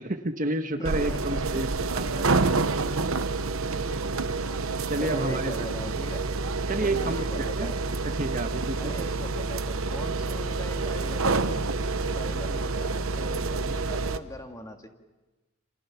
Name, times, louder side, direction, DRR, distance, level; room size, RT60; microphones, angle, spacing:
voice 1, 0.0-1.7 1.9-2.3 4.8-5.7 6.7-7.2 7.6-7.7 8.0-9.0, right 2 dB, 40° right, 6 dB, 1.4 m, -30 dB
voice 2, 0.8-1.6 5.0-6.2 6.8-7.8 8.8-14.9, left 1 dB, 15° left, 4 dB, 1.9 m, -41 dB
sound 1, 0.8-14.2, right 3 dB, 70° right, 1.1 m, -28 dB
28.5 x 28.0 x 5.9 m, 1.1 s
head